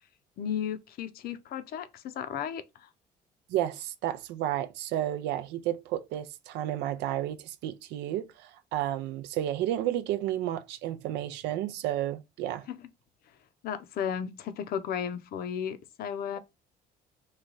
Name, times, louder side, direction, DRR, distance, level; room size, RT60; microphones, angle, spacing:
voice 1, 0.4-2.9 13.6-16.4, left 8 dB, 65° left, 0.5 m, -34 dB
voice 2, 3.5-12.7, right 12 dB, 85° right, 0.4 m, -32 dB
3.1 x 2.2 x 3.8 m
cardioid pair, 110°, 17 cm